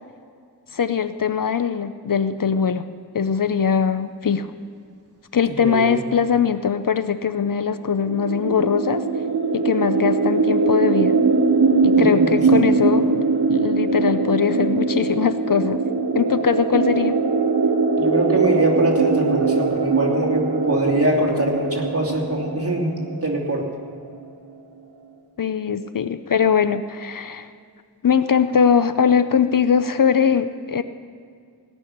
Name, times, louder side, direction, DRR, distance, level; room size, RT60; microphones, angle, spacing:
voice 1, 0.7-2.8 3.1-4.5 5.3-9.0 9.5-11.1 11.8-13.1 13.5-15.8 16.1-17.2 25.4-27.5 28.0-30.8, left 7 dB, 60° left, 12 dB, 0.6 m, -21 dB
sound 1, 8.0-23.7, right 4 dB, 80° right, 1.0 m, -21 dB
voice 2, 18.0-22.9 23.2-23.6, right 1 dB, 35° right, -2 dB, 2.8 m, -22 dB
17.5 x 6.3 x 9.9 m, 2.2 s
wide cardioid pair, 70°, 38 cm